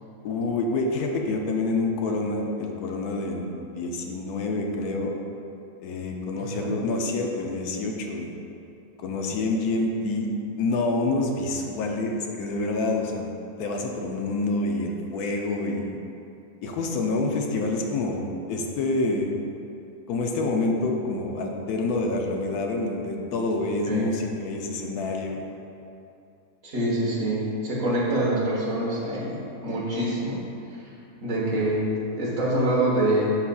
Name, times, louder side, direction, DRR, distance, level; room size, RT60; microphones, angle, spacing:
voice 1, 0.2-5.2 5.8-8.4 9.0-13.3 13.6-15.9 16.6-19.4 20.1-25.5, left 2 dB, 75° left, 1 dB, 1.1 m, -27 dB
voice 2, 6.4-6.7 23.8-24.2 26.6-30.4 30.7-30.8 31.2-31.9 32.1-33.4, right 1 dB, 55° right, -6 dB, 1.7 m, -25 dB
11.5 x 4.0 x 2.3 m, 2.7 s
omnidirectional pair, 1.7 m